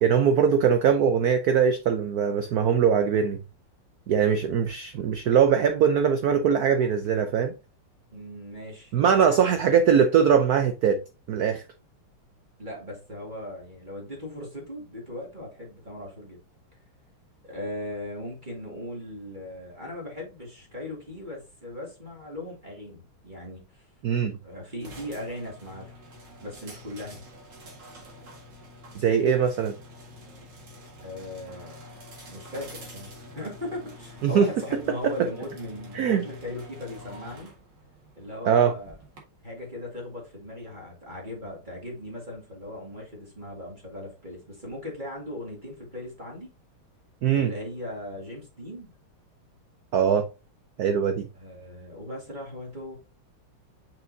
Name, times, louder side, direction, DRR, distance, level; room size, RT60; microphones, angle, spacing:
voice 1, 0.0-3.4 4.1-7.5 8.9-11.0 11.3-11.6 24.0-24.4 28.9-29.8 34.2-34.5 35.0-35.1 35.9-36.2 38.4-38.7 47.2-47.5 49.9-50.3 50.8-51.3, right 7 dB, 85° right, 0.8 m, -21 dB
voice 2, 8.1-9.8 12.6-16.4 17.4-23.9 24.4-25.9 26.4-27.2 31.0-37.5 38.2-39.0 39.4-46.5 47.3-48.9 51.3-53.0, left 1 dB, 20° right, 2.1 m, -38 dB
sound 1, 24.8-39.2, left 1 dB, 55° right, 2.5 m, -47 dB
6.0 x 5.8 x 2.7 m
omnidirectional pair, 2.4 m